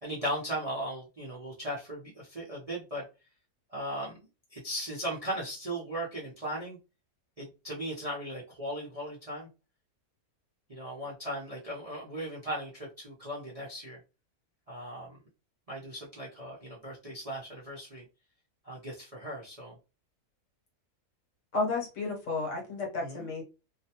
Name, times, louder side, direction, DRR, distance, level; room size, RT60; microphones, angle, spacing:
voice 1, 0.0-3.0 3.7-6.8 7.4-9.5 10.7-14.0 14.7-15.2 15.7-18.0 18.6-19.8 23.0-23.3, equal, 40° right, -7 dB, 0.5 m, -37 dB
voice 2, 21.5-23.4, left 3 dB, 60° left, 0 dB, 1.1 m, -32 dB
2.7 x 2.1 x 2.8 m, 0.30 s
omnidirectional pair, 1.6 m